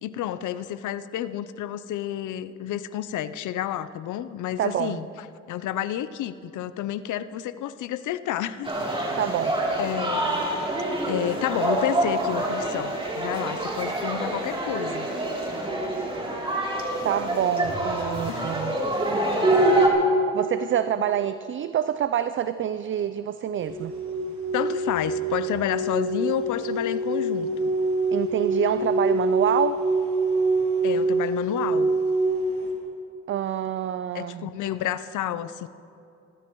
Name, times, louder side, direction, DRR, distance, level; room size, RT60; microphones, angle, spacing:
voice 1, 0.0-5.1 5.5-8.7 9.8-10.5 11.1-15.1 18.0-18.6 24.5-27.7 30.8-32.0 34.1-35.7, left 11 dB, 75° left, 14 dB, 0.7 m, -30 dB
voice 2, 4.6-5.0 9.2-9.5 17.0-18.8 20.3-23.9 28.1-29.8 33.3-34.5, right 10 dB, 40° right, 12 dB, 0.5 m, -26 dB
sound 1, 8.6-19.9, right 1 dB, 15° right, 3.2 m, -26 dB
sound 2, 23.6-32.7, right 2 dB, 75° right, 3.6 m, -25 dB
26.5 x 13.0 x 3.1 m, 2.7 s
cardioid pair, 90°, 30 cm